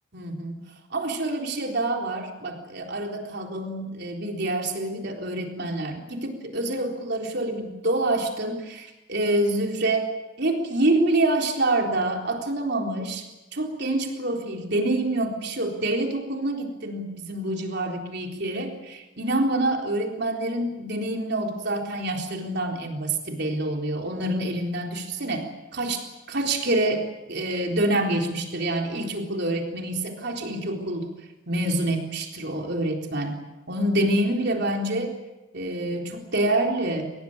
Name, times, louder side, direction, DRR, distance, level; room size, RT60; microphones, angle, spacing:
voice 1, 0.1-0.6 0.9-10.1 10.4-13.2 13.5-31.1 31.5-35.2 35.5-37.1, right 1 dB, 55° right, 2 dB, 3.9 m, -27 dB
23.5 x 21.0 x 8.9 m, 1.1 s
head